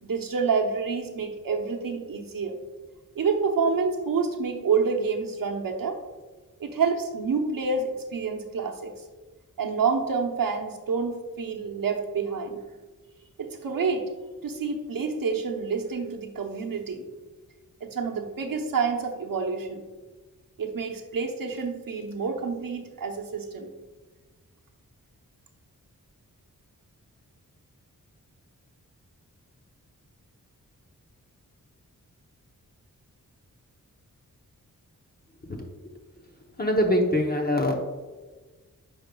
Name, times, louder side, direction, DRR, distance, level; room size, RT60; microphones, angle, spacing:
voice 1, 0.0-2.6 3.1-6.0 6.6-9.0 9.6-12.6 13.4-14.1 14.4-17.1 17.8-19.8 20.6-23.7, right 5 dB, 75° right, 3 dB, 0.9 m, -28 dB
voice 2, 36.6-37.8, left 1 dB, 25° left, 1 dB, 0.8 m, -23 dB
8.7 x 5.2 x 2.3 m, 1.3 s
cardioid pair, 60°, 34 cm